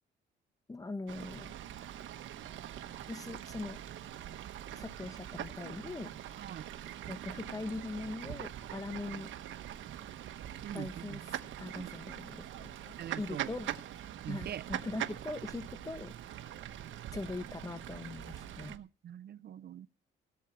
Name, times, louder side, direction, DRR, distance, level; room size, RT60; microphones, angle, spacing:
voice 1, 0.7-1.5 3.1-3.8 4.7-6.1 7.1-9.3 10.7-11.2 11.6-13.7 14.3-16.1 17.1-18.8, left 2 dB, 15° left, 12 dB, 1.3 m, -41 dB
Fowl / Bird, 1.1-18.8, right 11 dB, 75° right, 1.3 m, -43 dB
voice 2, 6.4-6.7 10.6-11.2 11.7-11.9 13.0-13.5 14.2-14.6 18.7-19.9, right 10 dB, 55° right, 16 dB, 0.6 m, -43 dB
17.0 x 8.2 x 4.5 m, 0.32 s
cardioid pair, 90°, 20 cm